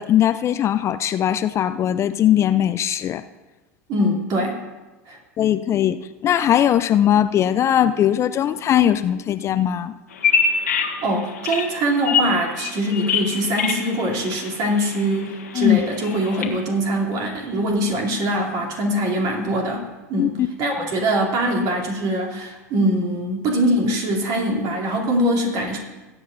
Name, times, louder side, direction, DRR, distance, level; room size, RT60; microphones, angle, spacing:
voice 1, 0.0-3.2 5.4-9.9 15.5-15.8 20.2-20.3, left 11 dB, 35° left, 13 dB, 0.4 m, -19 dB
voice 2, 3.9-4.6 5.1-5.2 11.0-25.8, right 1 dB, 50° right, -1 dB, 2.9 m, -23 dB
Bird vocalization bird call bird song, 10.1-16.5, left 5 dB, 85° left, 1.5 m, -26 dB
19.5 x 8.8 x 2.6 m, 1.1 s
hypercardioid pair, 90°, 8 cm